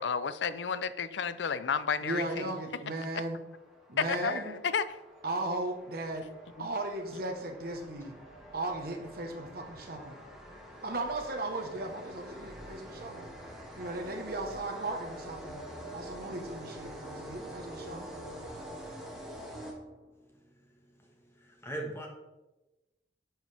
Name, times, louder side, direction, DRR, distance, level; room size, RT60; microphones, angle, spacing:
voice 1, 0.0-2.5 4.1-4.8 6.6-6.7, left 6 dB, 90° left, 14 dB, 0.5 m, -32 dB
voice 2, 2.0-3.4 3.9-4.6 5.2-6.2 6.6-8.1 8.5-10.1 10.8-13.3 13.8-15.6 15.9-18.1, right 2 dB, 60° right, 3 dB, 1.2 m, -36 dB
sound 1, 3.4-20.2, equal, ahead, 1.7 m, -46 dB
voice 3, 20.3-22.1, right 1 dB, 15° left, 0 dB, 1.4 m, -43 dB
10.5 x 6.5 x 3.4 m, 1.0 s
head